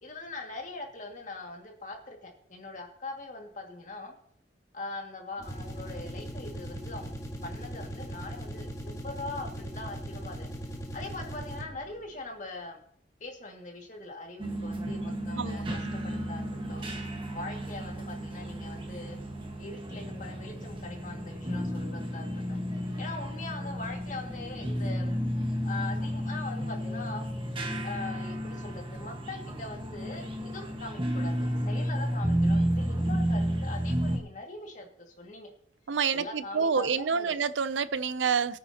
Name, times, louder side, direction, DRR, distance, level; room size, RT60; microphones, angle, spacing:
voice 1, 0.0-4.1 4.7-7.2 7.4-12.8 13.2-15.7 15.9-16.9 17.3-19.2 19.6-22.6 23.0-25.2 25.6-27.3 27.8-35.5 36.1-37.3, left 2 dB, 45° left, 2.1 m, -42 dB
sound 1, 5.4-11.9, equal, 20° left, 1.8 m, -39 dB
sound 2, 14.4-34.2, equal, 30° right, 1.5 m, -32 dB
voice 2, 15.4-15.9 35.9-38.6, right 6 dB, 85° right, 0.5 m, -28 dB
22.0 x 8.9 x 2.9 m
head